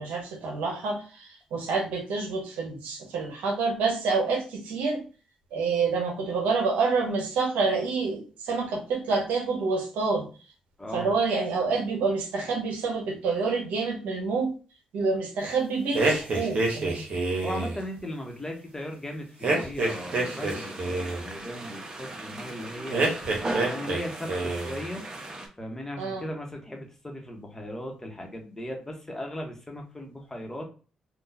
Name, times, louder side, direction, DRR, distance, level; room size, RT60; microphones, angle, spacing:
voice 1, 0.0-5.0 5.5-10.2 10.9-14.5 14.9-17.1 26.0-26.2, right 4 dB, 75° right, 2 dB, 0.8 m, -27 dB
voice 2, 10.8-11.1 17.4-23.2 23.7-25.0 25.6-30.6, left 1 dB, 15° left, 2 dB, 1.1 m, -37 dB
sound 1, 15.9-17.8 19.4-21.2 22.9-24.0 24.3-24.8, right 2 dB, 55° right, 1.1 m, -27 dB
sound 2, 19.8-25.5, right 2 dB, 30° right, 0.9 m, -37 dB
3.7 x 2.4 x 2.7 m, 0.36 s
hypercardioid pair, 45°, 3 cm